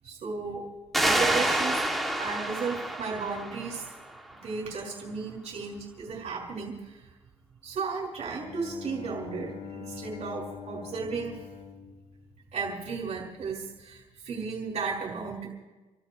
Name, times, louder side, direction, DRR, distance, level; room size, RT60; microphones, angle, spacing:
voice 1, 0.0-0.7 0.9-1.8 2.2-3.9 4.4-7.1 7.6-11.4 12.5-15.5, right 4 dB, 55° right, -2 dB, 5.4 m, -34 dB
sound 1, 0.9-4.3, right 1 dB, ahead, 2.8 m, -28 dB
Bowed string instrument, 8.2-13.0, left 9 dB, 60° left, 7.8 m, -44 dB
28.5 x 28.0 x 3.3 m, 1.2 s
cardioid pair, 90°, 14 cm